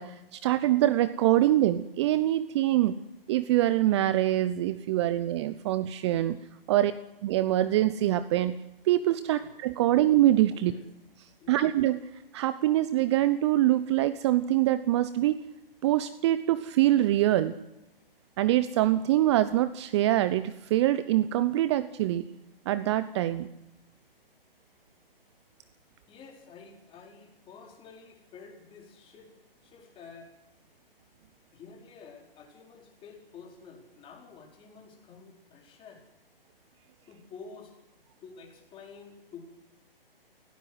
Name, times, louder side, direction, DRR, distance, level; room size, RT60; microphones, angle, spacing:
voice 1, 0.0-3.0 3.3-6.4 6.7-6.9 7.2-8.6 8.8-10.7 11.5-15.4 15.8-17.5 18.4-22.3 22.7-23.5, right 14 dB, 30° right, 14 dB, 0.7 m, -24 dB
voice 2, 26.1-30.3 31.5-36.0 37.1-37.7 38.2-39.5, left 5 dB, 20° left, 1 dB, 4.5 m, -50 dB
23.5 x 17.0 x 8.0 m, 0.93 s
figure-of-eight pair, 130°, 29 cm